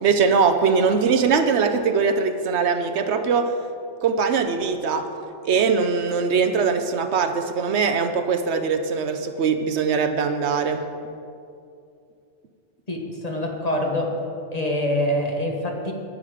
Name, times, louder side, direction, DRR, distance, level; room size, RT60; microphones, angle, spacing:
voice 1, 0.0-3.5 4.0-5.1 5.4-10.8, right 5 dB, 70° right, 8 dB, 0.9 m, -21 dB
voice 2, 12.9-14.1 14.5-15.9, left 1 dB, 35° left, 0 dB, 1.3 m, -25 dB
11.0 x 9.3 x 5.0 m, 2.5 s
omnidirectional pair, 1.2 m